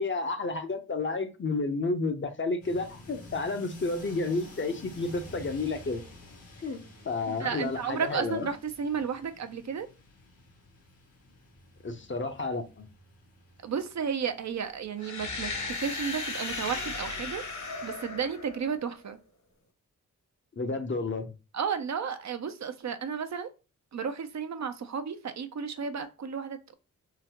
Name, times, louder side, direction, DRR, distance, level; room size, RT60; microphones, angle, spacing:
voice 1, 0.0-6.0 6.6-6.8 7.0-8.5 11.8-12.9 20.6-21.3, left 3 dB, 35° left, 7 dB, 0.7 m, -31 dB
sound 1, 2.6-15.8, left 1 dB, 75° left, 1.4 m, -51 dB
voice 2, 7.4-9.9 13.6-17.4 17.8-19.2 21.5-23.5 23.9-26.7, right 6 dB, 50° right, 9 dB, 0.5 m, -33 dB
sound 2, 15.0-18.9, left 3 dB, 55° left, 1.2 m, -36 dB
3.8 x 2.0 x 2.9 m, 0.31 s
cardioid pair, 45°, 35 cm